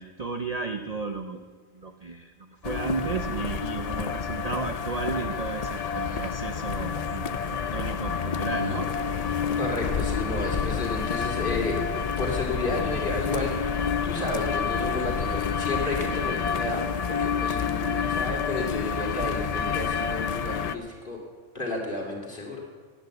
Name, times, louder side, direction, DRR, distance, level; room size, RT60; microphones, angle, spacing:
voice 1, 0.0-1.4 1.7-2.3 2.6-8.9, right 4 dB, 40° right, 7 dB, 0.6 m, -33 dB
sound 1, 2.6-20.7, left 6 dB, 60° left, 0.4 m, -29 dB
voice 2, 9.5-21.2 21.5-22.6, left 2 dB, 40° left, 0 dB, 3.0 m, -32 dB
15.5 x 9.2 x 8.0 m, 1.5 s
omnidirectional pair, 1.4 m